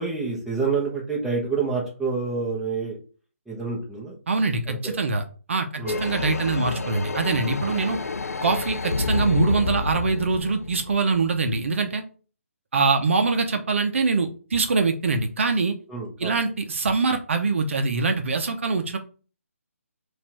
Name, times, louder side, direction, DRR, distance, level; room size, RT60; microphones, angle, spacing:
voice 1, 0.0-3.0 3.5-4.1 4.7-4.9 5.8-6.0 15.9-16.3, right 4 dB, ahead, -6 dB, 1.0 m, -27 dB
voice 2, 4.3-5.2 5.5-8.0 8.4-12.0 12.7-15.8 16.2-19.0, right 4 dB, 55° right, 6 dB, 0.7 m, -23 dB
sound 1, 5.9-11.6, left 3 dB, 90° left, 0.5 m, -29 dB
4.2 x 2.6 x 4.3 m, 0.37 s
figure-of-eight pair, 155°, 8 cm